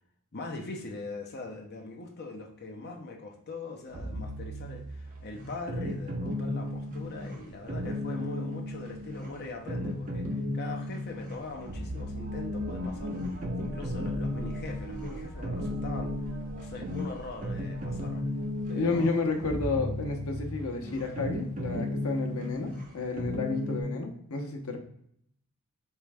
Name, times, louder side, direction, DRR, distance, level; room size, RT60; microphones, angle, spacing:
voice 1, 0.3-13.2 13.5-16.2 16.5-18.2 18.7-19.2, left 3 dB, 50° left, 2 dB, 0.8 m, -41 dB
sound 1, 3.9-23.8, left 1 dB, 40° right, 0.8 m, -35 dB
sound 2, 6.2-8.7 11.3-19.1 19.4-20.0, right 1 dB, 65° right, 0.9 m, -45 dB
voice 2, 18.7-24.8, left 3 dB, 75° left, 3 dB, 0.9 m, -31 dB
4.5 x 3.1 x 3.4 m, 0.69 s
head